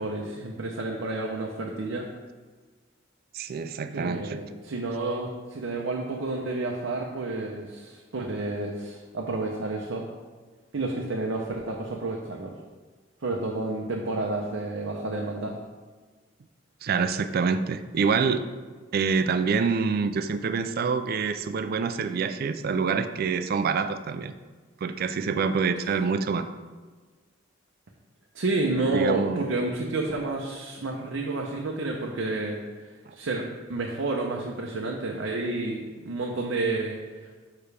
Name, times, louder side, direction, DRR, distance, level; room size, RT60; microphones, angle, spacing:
voice 1, 0.0-2.1 3.9-10.0 10.7-12.5 13.2-15.5 25.8-26.0 28.3-33.4 33.7-37.3, right 2 dB, 80° right, 0 dB, 0.7 m, -30 dB
voice 2, 3.3-4.4 16.8-18.5 18.9-24.3 24.8-26.5 28.9-29.4, right 5 dB, 50° right, 10 dB, 0.4 m, -26 dB
6.8 x 5.7 x 3.3 m, 1.4 s
head